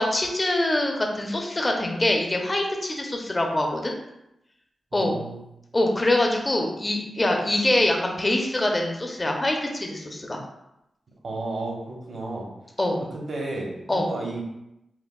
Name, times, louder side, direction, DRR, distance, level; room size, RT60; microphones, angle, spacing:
voice 1, 0.0-3.9 4.9-5.2 5.7-10.4 12.8-13.0 13.9-14.1, left 1 dB, 20° left, 2 dB, 0.5 m, -24 dB
voice 2, 4.9-5.4 11.2-12.5 13.0-14.4, right 2 dB, 55° right, -1 dB, 0.9 m, -33 dB
5.8 x 2.2 x 2.2 m, 0.85 s
wide cardioid pair, 145°, 0 cm